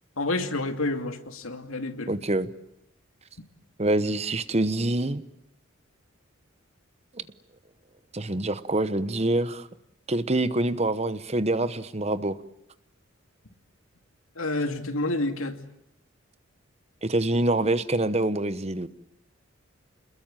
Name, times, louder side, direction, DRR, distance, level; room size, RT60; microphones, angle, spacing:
voice 1, 0.2-2.1 14.4-15.6, left 2 dB, 80° left, 7 dB, 2.6 m, -29 dB
voice 2, 2.1-2.5 3.8-5.2 8.1-9.7 10.1-12.4 17.0-18.9, right 2 dB, 30° right, 14 dB, 1.0 m, -25 dB
27.5 x 21.5 x 9.1 m, 0.77 s
head